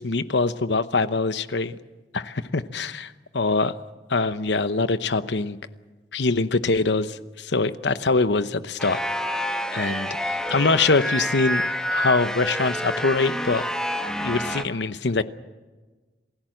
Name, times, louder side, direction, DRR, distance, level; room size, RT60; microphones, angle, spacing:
voice 1, 0.0-1.8 2.1-3.1 3.3-3.8 4.1-5.6 6.1-9.0 9.7-11.7 11.9-13.7 14.2-15.2, left 3 dB, 80° left, 13 dB, 0.9 m, -23 dB
sound 1, 8.8-14.6, equal, 5° left, 1.1 m, -27 dB
28.0 x 16.5 x 7.8 m, 1.3 s
head